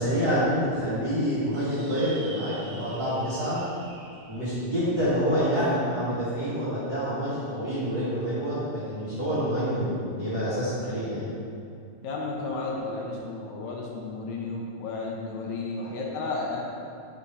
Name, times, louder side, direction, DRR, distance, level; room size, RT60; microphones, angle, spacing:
voice 1, 0.0-3.6 4.3-11.2, equal, 40° right, -13 dB, 1.5 m, -27 dB
sound 1, 1.5-6.3, right 3 dB, 80° right, 2.1 m, -47 dB
voice 2, 10.8-11.3 12.0-16.6, left 3 dB, 75° left, -2 dB, 1.8 m, -33 dB
7.0 x 3.7 x 5.3 m, 2.5 s
omnidirectional pair, 4.0 m